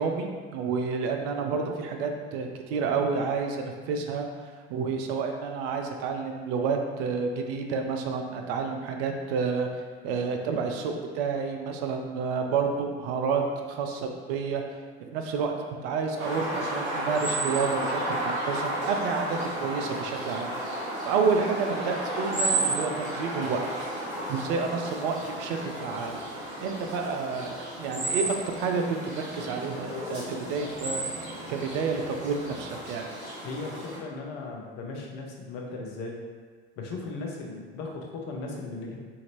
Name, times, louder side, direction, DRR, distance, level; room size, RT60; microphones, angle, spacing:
voice 1, 0.0-13.4 13.7-14.6 15.0-20.7 21.0-23.6 24.3-26.2 26.6-31.1 31.5-33.1, right 5 dB, 60° right, 4 dB, 0.5 m, -30 dB
sound 1, 16.2-34.0, right 1 dB, 40° right, 1.4 m, -33 dB
voice 2, 33.4-36.2 36.8-39.0, left 3 dB, 55° left, 0 dB, 0.7 m, -37 dB
2.8 x 2.5 x 2.9 m, 1.5 s
hypercardioid pair, 70°, 32 cm